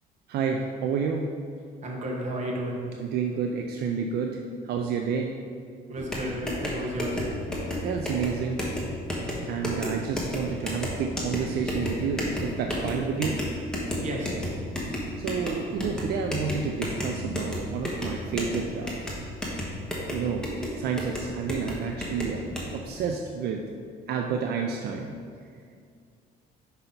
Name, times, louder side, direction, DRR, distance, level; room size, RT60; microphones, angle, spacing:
voice 1, 0.3-1.2 3.0-5.3 7.8-8.6 9.5-13.4 15.2-18.9 20.1-20.5 20.7-23.6 24.1-25.1, right 6 dB, 70° right, 3 dB, 0.5 m, -30 dB
voice 2, 1.8-2.9 5.9-7.5 14.0-14.6, right 1 dB, 45° right, -2 dB, 1.2 m, -33 dB
sound 1, 6.0-22.7, left 1 dB, 5° left, 1.3 m, -32 dB
5.6 x 5.6 x 3.9 m, 2.2 s
cardioid pair, 110°, 17 cm